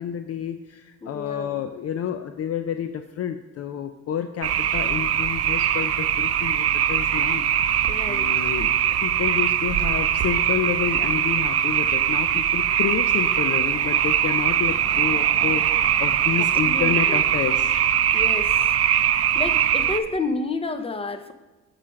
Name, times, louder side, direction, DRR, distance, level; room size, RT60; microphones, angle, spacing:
voice 1, 0.0-8.7 9.0-17.7, left 9 dB, 55° left, 9 dB, 0.5 m, -29 dB
voice 2, 1.0-1.6 7.9-8.5 16.3-17.2 18.1-18.7 19.3-21.3, left 3 dB, 20° left, 8 dB, 0.8 m, -30 dB
sound 1, 4.4-20.0, right 10 dB, 50° right, 0.6 m, -21 dB
7.4 x 4.9 x 5.8 m, 1.2 s
cardioid pair, 90°, 30 cm